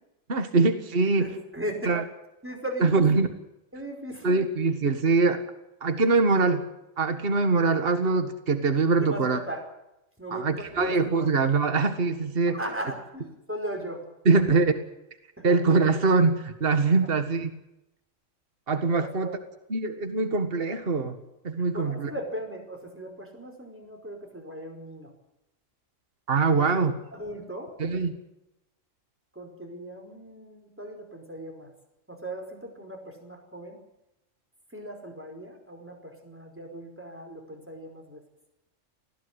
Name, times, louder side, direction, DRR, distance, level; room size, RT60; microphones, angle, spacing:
voice 1, 0.3-1.3 1.9-2.0 2.8-3.3 4.2-5.4 5.8-6.7 7.0-9.4 10.3-12.6 14.3-14.7 15.4-17.5 18.7-19.3 19.7-21.2 21.4-22.1 26.3-26.9 27.8-28.2, right 4 dB, 45° right, 9 dB, 1.9 m, -23 dB
voice 2, 1.2-1.9 2.4-3.3 3.7-4.3 9.0-9.6 10.2-10.9 12.5-14.1 15.4-15.5 19.0-19.4 21.7-25.1 26.5-26.7 27.1-27.7 29.3-31.7 32.1-33.8 34.7-38.2, right 1 dB, 10° right, 3 dB, 5.0 m, -38 dB
20.0 x 16.0 x 9.6 m, 0.89 s
omnidirectional pair, 1.3 m